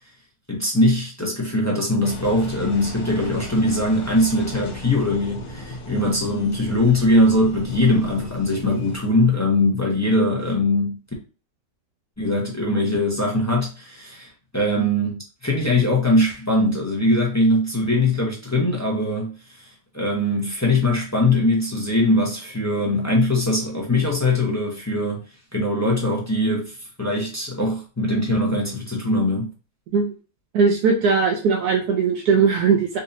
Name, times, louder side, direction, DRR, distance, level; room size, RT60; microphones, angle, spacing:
voice 1, 0.5-11.0 12.2-19.7 19.9-25.2 25.5-29.5, left 1 dB, 15° left, 0.5 m, -21 dB
Engine, 2.0-9.0, equal, 80° left, 1.3 m, -36 dB
voice 2, 30.5-33.0, right 5 dB, 80° right, 1.2 m, -19 dB
4.0 x 2.7 x 2.6 m
omnidirectional pair, 1.7 m